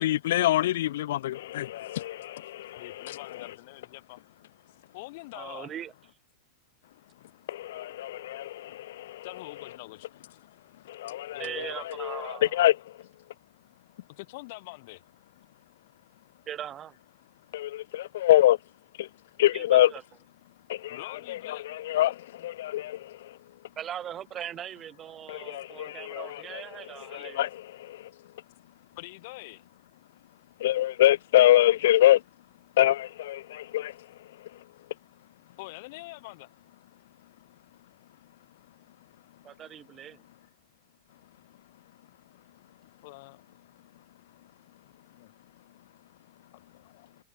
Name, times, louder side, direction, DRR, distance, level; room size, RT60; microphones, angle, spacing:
voice 1, 0.0-3.5 7.5-9.2 10.8-13.1 17.5-18.6 19.0-19.1 19.4-19.9 20.7-23.4 25.3-28.1 30.6-32.2 32.8-34.6, left 14 dB, 75° left, 0.8 m, -26 dB
voice 2, 2.7-4.2 4.7-5.7 9.2-10.1 11.1-11.8 14.1-15.0 20.9-21.7 22.6-22.8 29.0-29.6 35.6-36.5 42.8-43.4 44.8-45.3 46.5-47.1, left 23 dB, 50° left, 7.6 m, -45 dB
voice 3, 5.3-5.9 11.4-12.6 16.5-17.0 19.5-20.0 23.8-27.5 39.4-40.2, right 10 dB, 20° right, 7.6 m, -40 dB
supercardioid pair, 170°, 0 cm